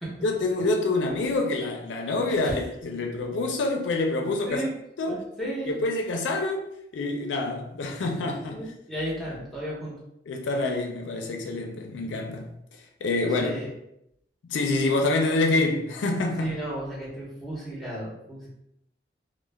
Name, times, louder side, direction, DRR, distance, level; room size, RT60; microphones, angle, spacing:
voice 1, 0.2-4.6 5.0-5.2 5.7-6.7 6.9-8.6 10.3-12.5 13.0-13.6 14.5-16.5, left 2 dB, 85° left, 0.4 m, -26 dB
voice 2, 5.1-5.8 8.3-9.9 13.4-13.7 16.4-18.5, equal, ahead, 0.8 m, -34 dB
2.2 x 2.1 x 3.2 m
head